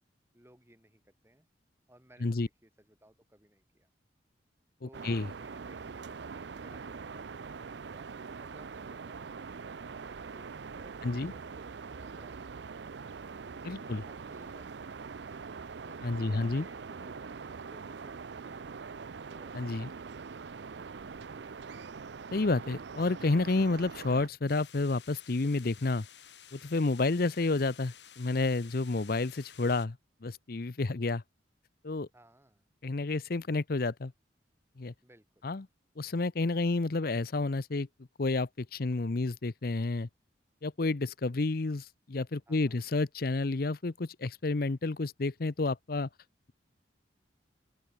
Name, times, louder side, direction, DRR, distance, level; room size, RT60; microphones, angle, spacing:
voice 1, 0.3-1.5 1.9-3.9 4.8-5.1 5.4-9.6 13.5-14.7 15.8-18.7 19.3-19.8 27.4-27.6 30.9-31.1 32.1-32.7 35.0-35.4 42.5-42.8, right 1 dB, 15° right, 7.4 m, -60 dB
voice 2, 4.8-5.3 11.0-11.3 13.6-14.0 16.0-16.7 19.5-19.9 22.3-26.1 26.5-30.0 30.2-31.2 31.8-32.1 32.8-34.1 34.8-34.9 35.4-35.7 36.0-37.9 38.2-40.1 40.6-46.1, left 3 dB, 55° left, 0.7 m, -30 dB
sound 1, 4.9-24.3, right 5 dB, 70° right, 0.5 m, -43 dB
sound 2, 24.5-29.9, left 9 dB, 75° left, 5.4 m, -54 dB
open air
head